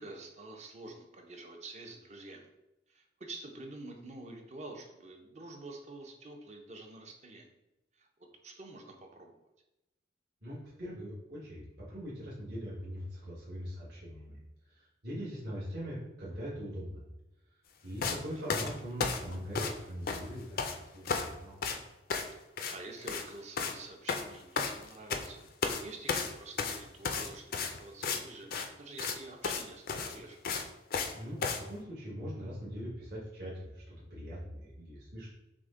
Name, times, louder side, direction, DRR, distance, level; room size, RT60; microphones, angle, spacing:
voice 1, 0.0-2.5 2.9-7.5 7.9-8.1 8.4-9.4 18.3-18.4 22.7-30.4, right 2 dB, 35° right, 3 dB, 0.6 m, -48 dB
voice 2, 10.4-14.4 14.7-17.1 17.8-21.7 31.1-35.3, equal, 60° right, -9 dB, 1.4 m, -41 dB
sound 1, 18.0-18.2 18.5-19.8 20.1-20.8 21.0-21.3 21.6-21.8 22.1-22.3 22.6-22.8 23.0-23.3 23.6-23.8 24.1-25.3 25.6-25.8 26.1-28.2 28.5-28.7 29.0-29.2 29.4-29.6 29.9-31.1 31.4-31.6, left 5 dB, 50° left, 0.4 m, -33 dB
6.1 x 2.1 x 3.7 m, 0.94 s
head